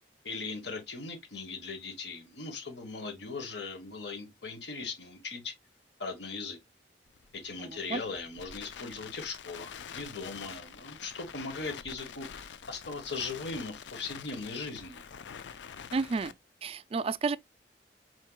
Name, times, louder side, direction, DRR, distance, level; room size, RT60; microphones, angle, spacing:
voice 1, 0.2-5.5 6.0-6.6 7.3-15.0, left 4 dB, 70° left, 1.4 m, -39 dB
Crackle, 7.1-16.3, left 7 dB, 85° left, 0.5 m, -46 dB
voice 2, 7.6-8.0 15.9-16.3 16.6-17.4, right 4 dB, 35° right, 0.3 m, -31 dB
4.6 x 4.4 x 2.3 m
head